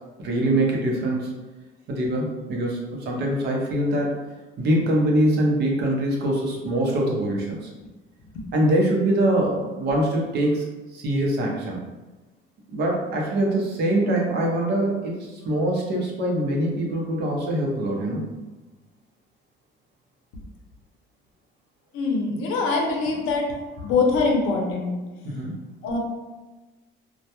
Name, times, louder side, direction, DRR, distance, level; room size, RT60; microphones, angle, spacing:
voice 1, 0.2-1.3 1.9-4.1 4.6-7.6 8.5-10.6 10.9-11.8 12.7-18.3 25.2-25.6, right 1 dB, 55° right, -2 dB, 0.6 m, -23 dB
voice 2, 21.9-23.4 23.8-24.9 25.8-26.0, left 4 dB, 85° left, 1 dB, 0.6 m, -23 dB
2.2 x 2.1 x 2.8 m, 1.2 s
cardioid pair, 150°, 21 cm